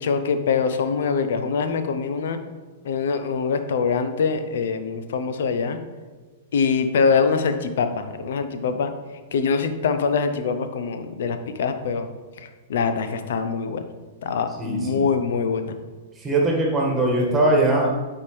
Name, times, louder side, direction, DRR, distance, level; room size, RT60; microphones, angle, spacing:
voice 1, 0.0-2.4 2.8-5.8 6.5-8.9 9.3-12.1 12.4-13.9 14.2-15.8, left 5 dB, 60° left, 9 dB, 0.5 m, -24 dB
voice 2, 14.6-15.0 16.2-17.9, right 2 dB, 15° right, -2 dB, 1.6 m, -21 dB
9.4 x 3.8 x 3.3 m, 1.3 s
figure-of-eight pair, 100°, 0 cm